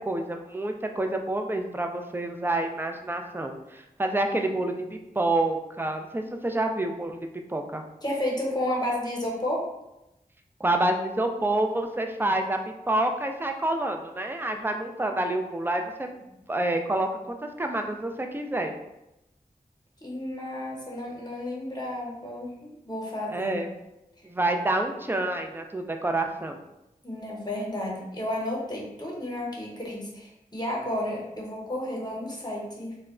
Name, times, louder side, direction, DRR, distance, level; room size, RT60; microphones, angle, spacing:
voice 1, 0.1-7.8 10.6-18.7 23.3-23.7 24.2-26.6, right 2 dB, 15° right, 4 dB, 0.3 m, -28 dB
voice 2, 8.0-9.7 20.0-23.6 27.0-33.0, left 1 dB, 25° left, -3 dB, 0.9 m, -32 dB
2.2 x 2.1 x 3.6 m, 0.90 s
wide cardioid pair, 45°, 15 cm